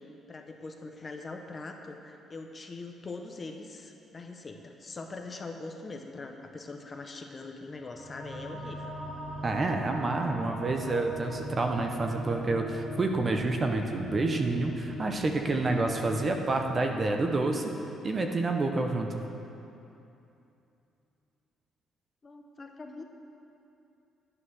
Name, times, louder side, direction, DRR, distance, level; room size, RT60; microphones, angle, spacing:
voice 1, 0.3-9.0 22.2-23.0, left 3 dB, 25° left, 4 dB, 0.8 m, -42 dB
sound 1, 7.7-18.6, equal, 5° right, 3.5 m, -41 dB
voice 2, 9.4-17.7 18.0-19.2, right 2 dB, 25° right, 4 dB, 0.9 m, -28 dB
11.0 x 9.9 x 6.3 m, 2.8 s
cardioid pair, 160°, 0 cm